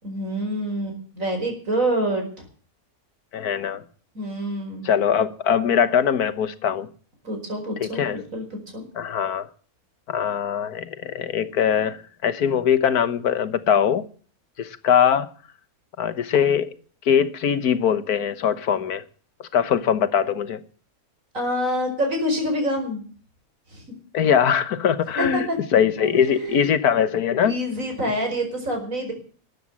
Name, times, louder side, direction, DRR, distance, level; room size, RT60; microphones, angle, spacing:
voice 1, 0.0-2.3 4.2-4.9 7.2-8.5 8.7-8.8 21.3-23.0 23.7-23.8 25.2-25.6 26.0-26.7 27.4-29.1, equal, 60° right, 5.4 m, -26 dB
voice 2, 3.3-3.8 4.8-6.9 7.8-8.2 8.9-9.5 10.1-14.0 14.6-15.3 16.0-16.8 17.0-19.0 19.4-20.6 24.1-27.5, left 8 dB, 85° left, 1.6 m, -21 dB
13.5 x 9.5 x 9.7 m
omnidirectional pair, 1.6 m